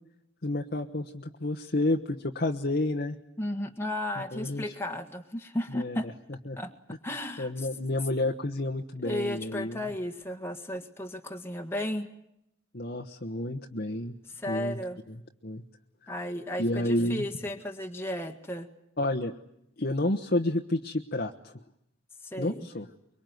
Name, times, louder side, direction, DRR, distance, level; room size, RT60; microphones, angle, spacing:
voice 1, 0.4-3.2 4.3-4.6 5.7-6.0 6.5-6.6 7.4-9.9 12.7-14.1 14.5-14.8 15.1-15.2 15.4-15.6 16.0-16.1 16.6-17.2 19.0-19.3 19.8-21.6 22.4-22.9, left 1 dB, 45° left, 2 dB, 1.2 m, -30 dB
voice 2, 3.4-6.1 6.6-6.7 7.0-7.7 9.0-12.1 14.3-15.0 16.1-18.7 22.2-22.7, left 1 dB, 10° left, 4 dB, 1.7 m, -34 dB
24.5 x 23.5 x 9.4 m, 0.79 s
head